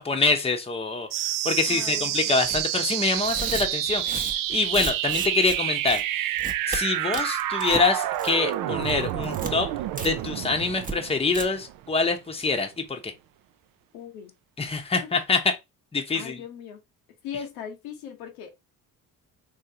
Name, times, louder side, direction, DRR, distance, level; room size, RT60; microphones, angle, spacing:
voice 1, 0.0-6.4 6.7-9.7 10.0-13.1 14.6-15.6 15.9-16.4, left 4 dB, 15° left, 0.8 m, -25 dB
sound 1, 1.1-12.1, right 13 dB, 55° right, 0.4 m, -29 dB
voice 2, 1.6-2.2 13.9-14.3 14.9-15.1 16.1-16.8 17.2-18.6, left 8 dB, 80° left, 1.0 m, -39 dB
Tearing, 2.4-2.6 3.1-5.6 5.9-6.0 6.4-6.8 7.1-7.9 8.1-8.5 8.8-9.5 10.0-10.1 10.4-10.5 10.8-10.9 11.3-11.4, right 3 dB, 20° right, 0.9 m, -34 dB
3.7 x 2.7 x 2.8 m
hypercardioid pair, 55°, 42 cm